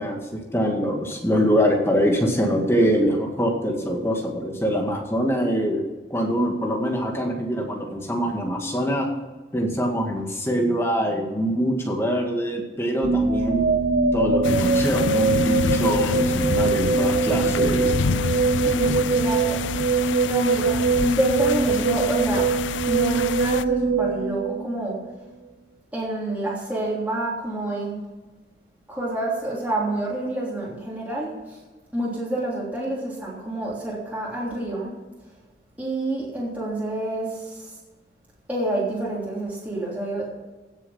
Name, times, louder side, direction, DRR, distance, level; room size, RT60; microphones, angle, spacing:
voice 1, 0.0-5.8 6.1-9.1 9.5-13.7 14.1-17.9 18.6-19.0, equal, 15° left, 1 dB, 1.9 m, -24 dB
sound 1, 13.0-25.1, right 4 dB, 50° right, 0.7 m, -23 dB
sound 2, 14.4-23.6, left 6 dB, 85° left, 0.4 m, -28 dB
voice 2, 18.5-22.5 22.9-25.0 25.9-28.0 28.9-31.6 31.9-34.9 35.8-37.8 38.5-40.3, right 1 dB, 10° right, -6 dB, 3.2 m, -28 dB
16.5 x 7.2 x 5.8 m, 1.2 s
head